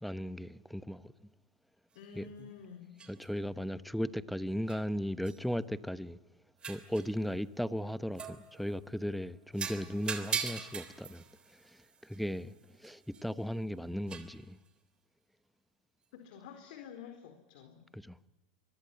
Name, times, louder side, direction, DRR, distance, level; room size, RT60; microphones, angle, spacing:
voice 1, 0.0-1.1 2.2-2.5 3.1-6.2 6.7-11.2 12.1-12.5 12.8-14.6 17.9-18.1, equal, ahead, 1.0 m, -36 dB
voice 2, 1.9-2.9 16.1-17.9, left 6 dB, 70° left, 4.3 m, -50 dB
sound 1, 2.0-2.1 3.0-3.3 4.7-4.9 5.2-5.4 6.6-7.2 8.2-8.9 9.5-13.4 14.1-14.4, right 6 dB, 20° right, 3.4 m, -41 dB
25.0 x 23.0 x 9.1 m
supercardioid pair, 125°, 5 cm